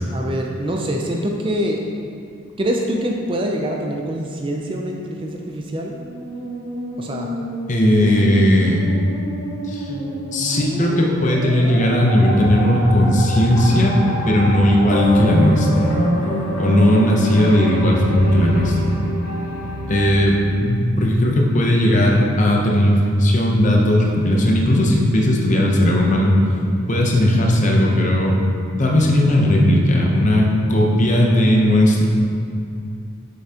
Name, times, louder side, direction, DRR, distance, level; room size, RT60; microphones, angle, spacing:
voice 1, 0.1-1.8 2.6-6.0 7.0-7.3 9.9-10.6, equal, 25° right, 1 dB, 0.3 m, -25 dB
Musical instrument, 5.8-19.2, equal, 85° right, 1.2 m, -30 dB
voice 2, 7.7-8.9 9.7-9.9 10.3-14.0 14.3-16.0 16.6-18.9 19.9-26.4 26.9-28.4 28.8-32.1, left 1 dB, 35° left, -1 dB, 0.7 m, -16 dB
sound 1, 12.1-20.1, equal, 75° left, 1.2 m, -26 dB
6.7 x 5.6 x 2.8 m, 2.5 s
head